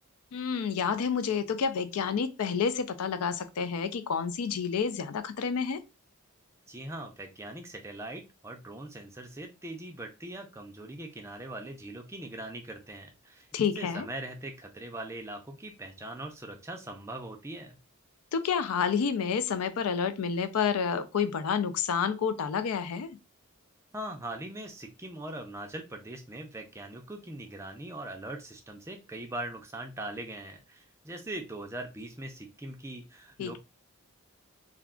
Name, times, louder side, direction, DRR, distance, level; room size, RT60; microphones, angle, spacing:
voice 1, 0.3-5.8 13.5-14.1 18.3-23.2 33.4-33.6, left 6 dB, 80° left, 0.4 m, -29 dB
voice 2, 6.7-13.5 13.8-17.8 23.9-33.6, right 1 dB, 10° right, 0.4 m, -41 dB
2.4 x 2.2 x 3.6 m
head